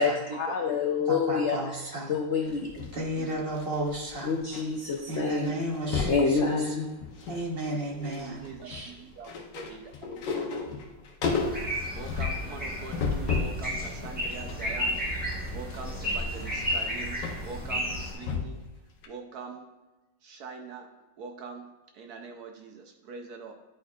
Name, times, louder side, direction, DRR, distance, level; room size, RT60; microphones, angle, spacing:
voice 1, 0.0-2.7 4.2-5.6 6.1-6.9, left 5 dB, 70° left, 2 dB, 0.6 m, -27 dB
voice 2, 1.1-2.1 2.9-4.3 5.1-6.7 7.3-8.9, right 1 dB, 35° right, -2 dB, 1.2 m, -33 dB
sound 1, 2.5-4.6 4.9-5.2 5.4-6.3 6.8-7.5 7.7-13.6 14.0-18.7 19.0-19.1, left 5 dB, 85° left, 1.6 m, -34 dB
voice 3, 7.9-10.5 11.9-15.0 15.5-18.6 19.1-19.8 20.2-20.9 21.2-21.7 21.9-23.5, right 5 dB, 65° right, 3 dB, 1.1 m, -43 dB
sound 2, 11.2-18.1, equal, 5° right, 1.1 m, -33 dB
10.5 x 4.4 x 2.4 m, 1.1 s
omnidirectional pair, 1.9 m